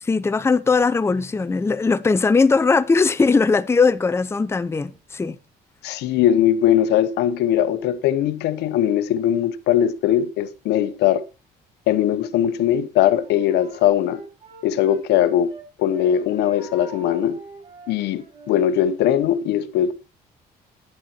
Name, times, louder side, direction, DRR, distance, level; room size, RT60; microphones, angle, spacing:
voice 1, 0.0-5.4, left 4 dB, 15° left, 0.6 m, -19 dB
voice 2, 5.8-11.2 11.9-14.2 14.6-15.5 15.8-17.4 17.9-19.9, left 10 dB, 80° left, 1.0 m, -20 dB
Wind instrument woodwind instrument, 13.0-15.6 15.9-18.7, right 3 dB, 30° right, 6.5 m, -43 dB
11.0 x 10.5 x 4.2 m
cardioid pair, 110°, 17 cm